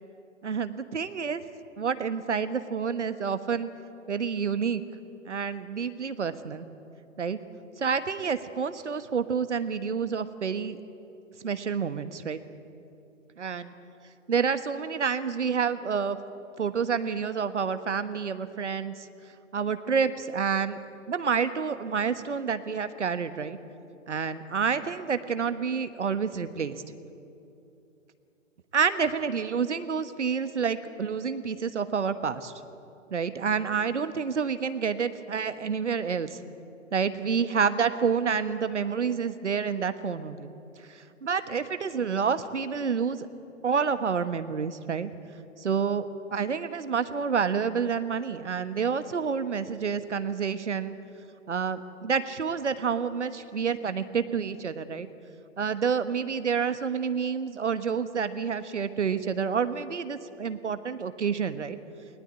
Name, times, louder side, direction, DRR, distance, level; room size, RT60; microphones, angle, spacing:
voice 1, 0.4-1.4 1.8-3.7 4.1-4.8 5.3-6.7 7.2-7.4 7.8-10.8 11.4-12.4 13.4-13.7 14.3-16.2 16.6-19.1 19.5-20.8 21.1-23.6 24.1-26.8 28.7-32.5 33.1-36.4 36.9-40.5 40.9-43.2 43.6-45.1 45.6-51.0 51.5-55.1 55.6-61.8, right 6 dB, 65° right, 12 dB, 1.3 m, -28 dB
20.0 x 17.5 x 8.7 m, 2.8 s
figure-of-eight pair, 120°, 38 cm